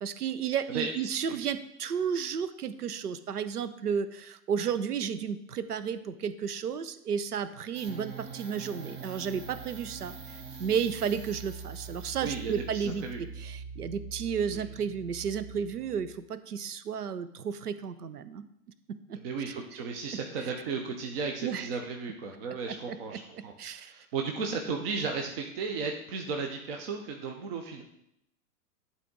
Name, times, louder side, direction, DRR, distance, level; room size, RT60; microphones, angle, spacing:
voice 1, 0.0-10.1 10.6-18.5 18.9-19.2 21.4-21.7 22.7-23.9, right 7 dB, 75° right, 13 dB, 0.7 m, -33 dB
sound 1, 7.8-16.2, right 5 dB, 15° right, 0.5 m, -43 dB
voice 2, 12.2-13.2 14.5-14.6 19.1-27.8, right 4 dB, 40° right, 3 dB, 0.9 m, -35 dB
10.5 x 4.1 x 3.8 m, 0.78 s
figure-of-eight pair, 105°, 46 cm